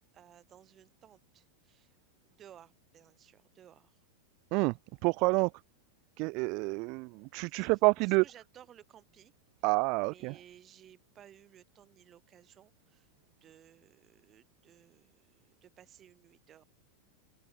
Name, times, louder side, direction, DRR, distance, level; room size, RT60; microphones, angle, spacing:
voice 1, 0.1-2.0 2.3-4.0 7.4-9.3 9.6-16.6, right 10 dB, 30° right, 4.2 m, -58 dB
voice 2, 5.0-5.5 6.2-8.2 9.6-10.3, right 29 dB, 45° right, 0.3 m, -28 dB
open air
figure-of-eight pair, 90°, 0 cm